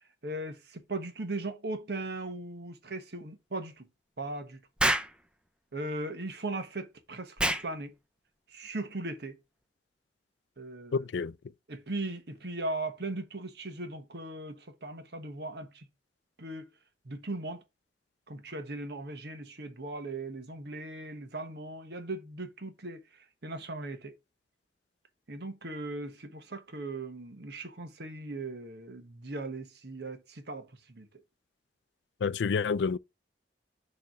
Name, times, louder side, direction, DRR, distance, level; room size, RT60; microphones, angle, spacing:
voice 1, 0.2-3.9 4.2-4.6 5.7-7.9 8.5-9.4 10.6-11.1 11.7-15.8 16.4-16.7 17.0-17.6 18.3-23.0 23.4-24.1 25.3-31.1, right 2 dB, 65° right, 1.3 m, -38 dB
Explosion, 4.8-5.2 7.4-7.7, right 1 dB, 5° right, 0.6 m, -26 dB
voice 2, 10.9-11.4 32.2-33.0, left 5 dB, 85° left, 0.4 m, -28 dB
6.7 x 3.3 x 6.1 m
head